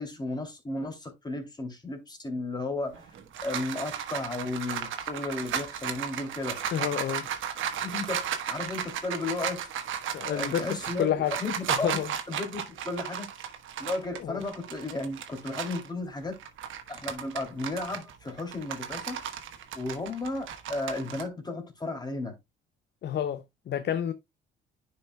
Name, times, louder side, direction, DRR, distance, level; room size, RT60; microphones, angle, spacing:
voice 1, 0.0-3.1 3.4-6.6 7.8-9.7 10.2-11.9 12.3-13.3 13.8-16.4 16.9-19.2 19.7-22.4, left 2 dB, 20° left, 2.7 m, -34 dB
sound 1, 2.9-15.9 16.3-21.2, right 8 dB, 80° right, 1.2 m, -35 dB
voice 2, 6.7-7.3 10.1-11.4 11.7-12.1 14.2-14.4 23.0-24.1, left 10 dB, 60° left, 0.6 m, -29 dB
10.0 x 5.4 x 2.2 m
cardioid pair, 90°, 20 cm